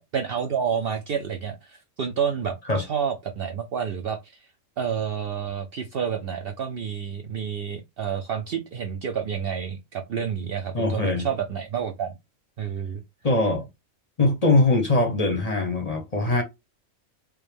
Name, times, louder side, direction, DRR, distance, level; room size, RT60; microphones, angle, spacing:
voice 1, 0.1-4.4 4.8-12.1 12.6-13.0, right 7 dB, 60° right, 0.6 m, -29 dB
voice 2, 10.7-11.3 13.2-13.7 14.2-16.4, left 2 dB, 35° left, 0.7 m, -22 dB
4.7 x 2.1 x 3.3 m
omnidirectional pair, 1.4 m